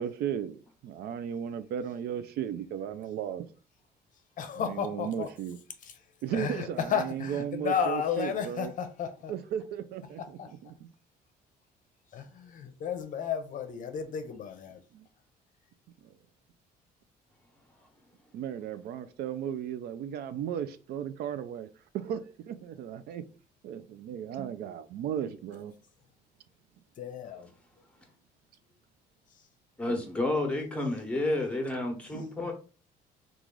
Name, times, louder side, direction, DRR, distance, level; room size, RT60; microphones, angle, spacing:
voice 1, 0.0-3.5 4.5-5.6 6.2-8.7 9.3-10.9 14.9-15.1 16.0-16.1 18.3-21.7 21.9-23.2 23.6-25.7 29.9-30.0 32.1-32.3, right 9 dB, 70° right, 0.4 m, -35 dB
voice 2, 4.4-5.3 6.3-9.3 10.4-10.5 12.1-14.8 27.0-27.5, left 7 dB, 50° left, 0.6 m, -33 dB
voice 3, 29.8-32.5, left 2 dB, 5° left, 1.0 m, -30 dB
3.1 x 2.4 x 3.8 m
cardioid pair, 110°, 17 cm